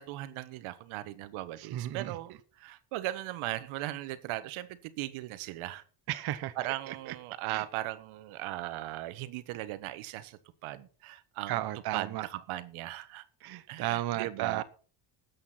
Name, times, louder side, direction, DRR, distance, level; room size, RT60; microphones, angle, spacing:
voice 1, 0.0-5.8 6.6-11.6 11.9-13.2 13.7-14.6, right 15 dB, 85° right, 1.4 m, -38 dB
voice 2, 1.6-2.1 6.1-7.1 7.5-7.6 11.5-12.2 13.4-14.6, right 14 dB, 50° right, 0.9 m, -34 dB
13.0 x 8.7 x 5.7 m
cardioid pair, 145°, 48 cm